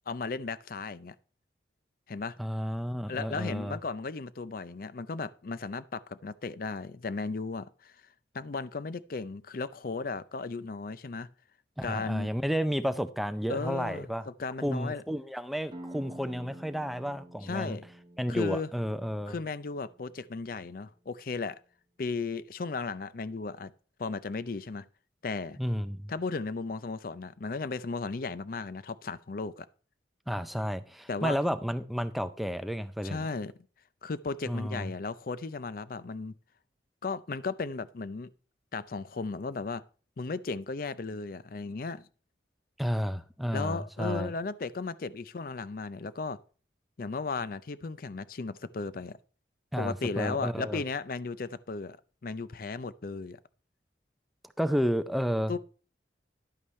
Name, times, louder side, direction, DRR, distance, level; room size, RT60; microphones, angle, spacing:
voice 1, 0.1-1.1 2.1-2.3 3.1-8.0 8.3-11.3 11.8-12.3 13.5-15.0 17.4-17.9 18.3-18.7 19.3-21.6 22.0-23.7 24.0-24.9 25.2-25.6 26.1-29.7 31.1-31.4 33.0-33.5 34.0-36.4 37.0-38.3 38.7-39.8 40.2-42.0 43.5-46.4 47.0-49.2 49.8-52.0 52.2-53.4 55.5-55.6, left 4 dB, 50° left, 0.5 m, -35 dB
voice 2, 2.4-3.8 11.8-14.2 14.6-17.8 18.2-19.4 25.6-26.1 30.3-33.3 34.5-34.9 42.8-44.3 49.7-50.8 54.6-55.6, equal, ahead, 0.5 m, -31 dB
sound 1, 15.7-21.1, right 1 dB, 25° right, 0.9 m, -49 dB
11.0 x 8.7 x 3.2 m
head